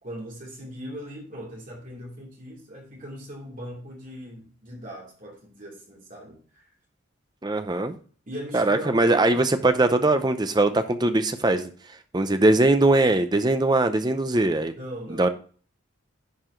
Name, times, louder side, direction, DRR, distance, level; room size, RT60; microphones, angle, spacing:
voice 1, 0.0-6.7 8.3-9.4 14.8-15.3, equal, 40° right, 2.8 m, -39 dB
voice 2, 7.4-7.9 8.5-11.7 12.1-14.7 15.2-15.3, right 2 dB, 20° right, 0.6 m, -21 dB
10.5 x 4.8 x 3.7 m
head